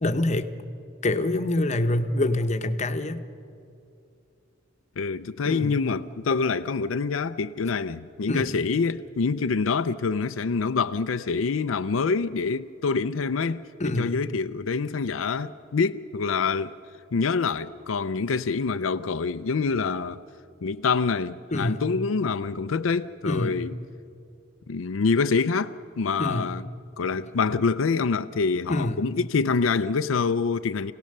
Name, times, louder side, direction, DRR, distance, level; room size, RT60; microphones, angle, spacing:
voice 1, 0.0-0.5 1.0-3.2 5.4-5.8 8.3-8.6 13.8-14.2 21.5-21.8 23.2-23.6 26.2-26.6 28.7-29.1, left 1 dB, 35° left, 0.9 m, -26 dB
voice 2, 5.0-16.8 17.1-20.2 20.6-23.8 24.7-26.6 27.0-30.9, left 4 dB, 90° left, 0.5 m, -26 dB
27.5 x 17.5 x 6.6 m
head